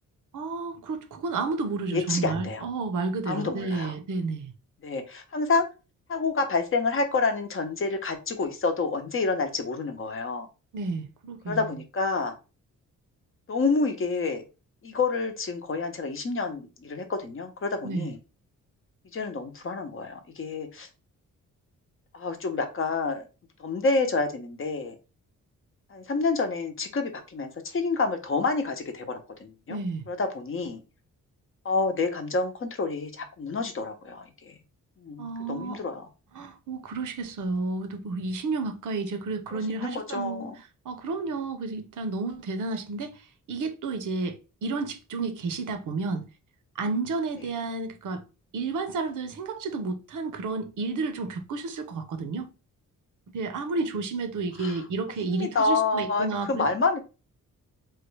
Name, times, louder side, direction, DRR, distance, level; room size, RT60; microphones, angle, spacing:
voice 1, 0.3-4.5 10.7-11.6 17.8-18.1 29.7-30.0 35.2-35.8 36.4-40.5 40.8-43.1 43.5-44.4 44.6-46.3 46.8-48.2 48.5-52.5 53.3-56.7, right 3 dB, 65° right, 0.7 m, -31 dB
voice 2, 1.9-2.6 3.3-4.0 4.8-5.6 6.1-10.5 11.5-12.3 13.5-14.4 14.8-18.2 19.1-20.9 22.1-23.3 23.6-24.9 25.9-29.8 30.1-30.8 31.6-34.5 35.0-36.1 39.5-40.6 54.6-54.8 55.3-57.0, left 3 dB, 40° left, 0.7 m, -28 dB
3.2 x 2.2 x 3.1 m
cardioid pair, 85°, 33 cm